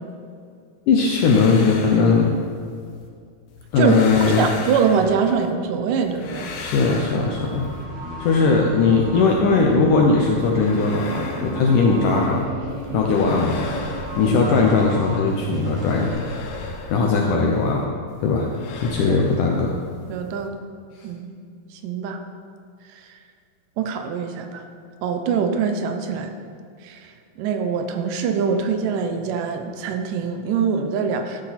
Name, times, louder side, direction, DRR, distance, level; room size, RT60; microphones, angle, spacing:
sound 1, 0.9-3.1 3.5-5.5 5.9-7.8 10.2-12.4 12.7-15.0 15.3-17.8 18.1-20.5, left 3 dB, 90° left, 3.2 m, -37 dB
voice 1, 0.9-2.3 3.7-4.5 6.6-7.7 8.2-12.4 12.9-13.7 14.2-16.2 16.9-17.9 18.2-18.5 18.8-19.7, left 4 dB, 75° left, 0 dB, 2.0 m, -19 dB
voice 2, 4.3-6.5 14.2-14.4 19.1-19.2 19.5-19.6 20.1-20.6 21.0-21.4 21.8-22.2 23.8-24.6 25.0-26.3 26.8-27.0 27.4-31.4, right 6 dB, 75° right, 6 dB, 2.1 m, -23 dB
sound 2, 6.4-16.1, right 1 dB, 45° right, 3.9 m, -32 dB
13.0 x 10.5 x 4.2 m, 2.3 s
omnidirectional pair, 4.6 m